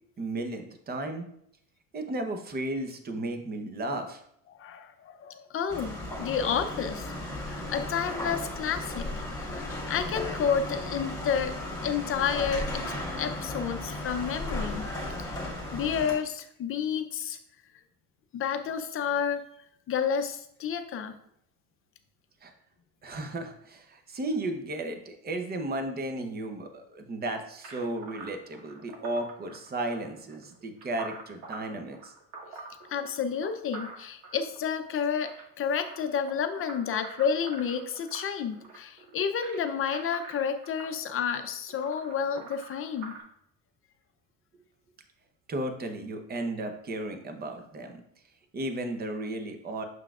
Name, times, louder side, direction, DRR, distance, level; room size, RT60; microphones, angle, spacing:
voice 1, 0.2-1.3 1.9-4.2 22.4-22.5 23.0-32.1 45.5-48.0 48.5-49.8, right 2 dB, 25° right, 6 dB, 0.8 m, -34 dB
voice 2, 4.5-11.6 11.8-14.9 15.2-15.4 15.7-17.4 18.3-19.4 19.9-21.2 32.9-35.3 35.6-43.1, left 7 dB, 30° left, 8 dB, 0.6 m, -30 dB
sound 1, 5.7-16.1, left 1 dB, 10° left, 1.9 m, -35 dB
sound 2, 27.6-43.2, right 3 dB, 70° right, 1.8 m, -46 dB
7.5 x 5.6 x 2.4 m, 0.74 s
cardioid pair, 130°, 41 cm